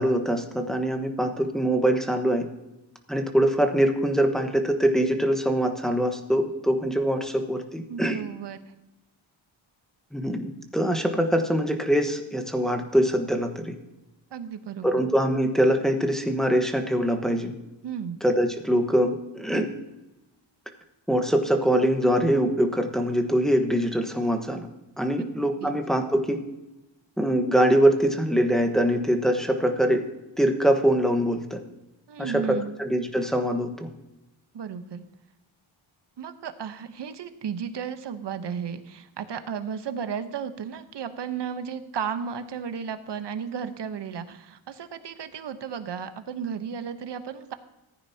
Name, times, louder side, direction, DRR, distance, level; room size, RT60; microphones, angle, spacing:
voice 1, 0.0-2.5 3.1-8.2 10.1-13.7 14.8-17.5 18.2-19.7 21.1-24.7 25.0-26.4 27.2-30.0 30.4-31.6 32.2-33.9, equal, ahead, 4 dB, 1.2 m, -23 dB
voice 2, 7.9-8.6 14.3-15.0 17.8-18.2 25.6-25.7 32.1-32.7 34.5-35.0 36.2-47.5, right 7 dB, 60° right, 10 dB, 1.0 m, -34 dB
15.0 x 9.6 x 2.8 m, 0.97 s
cardioid pair, 95°, 48 cm